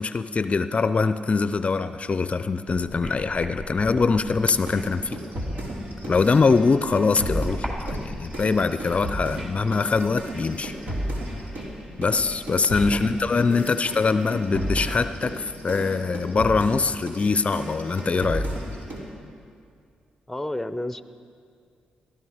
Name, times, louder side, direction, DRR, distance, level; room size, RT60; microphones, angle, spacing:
voice 1, 0.0-5.2 6.1-7.6 7.9-10.7 12.0-18.5, left 4 dB, 40° left, 12 dB, 0.5 m, -23 dB
sound 1, 2.7-13.3, right 1 dB, 35° right, 3.4 m, -40 dB
sound 2, 4.7-11.7 12.0-19.1, equal, 75° right, 3.1 m, -33 dB
voice 2, 13.5-13.8 20.3-21.0, left 1 dB, 5° left, 13 dB, 0.7 m, -32 dB
19.5 x 13.0 x 5.0 m, 2.2 s
supercardioid pair, 50°, 3 cm